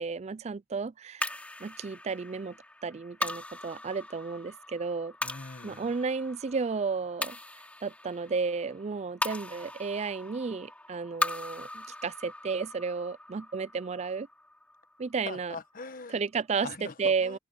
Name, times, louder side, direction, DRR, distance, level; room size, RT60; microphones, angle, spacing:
voice 1, 0.0-1.3 1.6-2.6 2.8-5.1 5.6-7.4 7.8-14.3 15.0-15.6 16.1-16.7 17.0-17.4, right 5 dB, 35° right, 0.4 m, -32 dB
sound 1, 1.2-15.7, left 1 dB, 10° left, 2.9 m, -40 dB
voice 2, 5.2-5.9 15.2-16.2 16.6-17.4, left 3 dB, 50° left, 1.2 m, -42 dB
open air
head